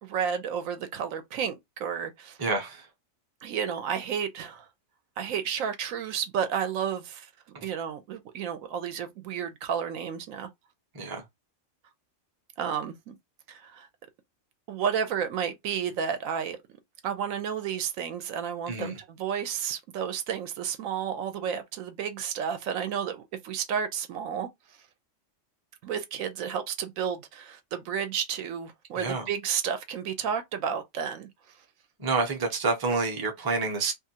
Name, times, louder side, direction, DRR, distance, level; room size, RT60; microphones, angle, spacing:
voice 1, 0.0-2.4 3.4-4.7 5.2-7.3 7.6-10.5 12.6-13.1 13.5-13.9 14.7-16.6 17.0-24.5 25.8-31.6, right 8 dB, 80° right, 1.0 m, -31 dB
voice 2, 2.4-2.9 7.5-7.7 10.9-11.2 18.7-19.0 29.0-29.3 32.0-33.9, right 3 dB, 25° right, 0.5 m, -28 dB
2.6 x 2.5 x 2.8 m
omnidirectional pair, 1.4 m